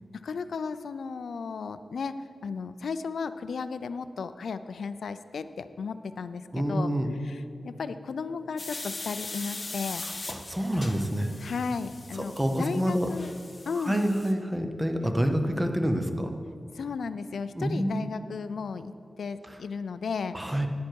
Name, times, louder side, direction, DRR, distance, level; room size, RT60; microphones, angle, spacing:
voice 1, 0.1-2.2 2.4-6.9 7.2-10.0 11.4-13.3 13.7-14.1 16.7-20.6, left 5 dB, 80° left, 12 dB, 0.4 m, -35 dB
voice 2, 6.5-7.1 10.0-11.3 12.2-13.1 13.8-16.3 17.5-18.1 20.3-20.7, equal, 10° right, 5 dB, 0.7 m, -27 dB
sound 1, 8.6-14.3, left 2 dB, 25° left, 0.9 m, -40 dB
10.5 x 9.6 x 4.6 m, 2.4 s
wide cardioid pair, 170°, 0 cm